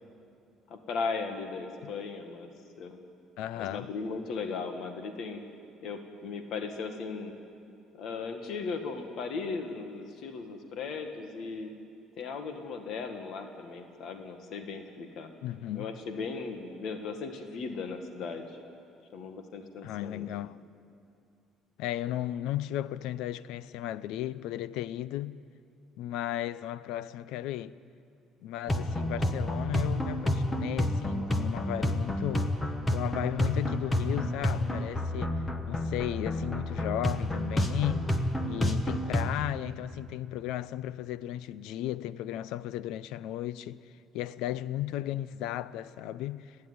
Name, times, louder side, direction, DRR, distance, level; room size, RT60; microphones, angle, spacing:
voice 1, 0.7-2.5 2.8-3.0 3.6-5.4 5.8-7.3 7.9-11.7 12.2-15.3 15.7-18.6 19.1-20.3, left 4 dB, 50° left, 1.6 m, -37 dB
voice 2, 3.4-3.9 15.4-15.9 19.8-20.6 21.8-25.4 26.0-27.8 28.4-32.5 32.9-38.2 38.4-43.8 44.1-46.6, left 13 dB, 80° left, 0.5 m, -35 dB
sound 1, 28.7-39.3, left 1 dB, 15° left, 1.1 m, -30 dB
29.0 x 10.5 x 9.5 m
cardioid pair, 170°, 0 cm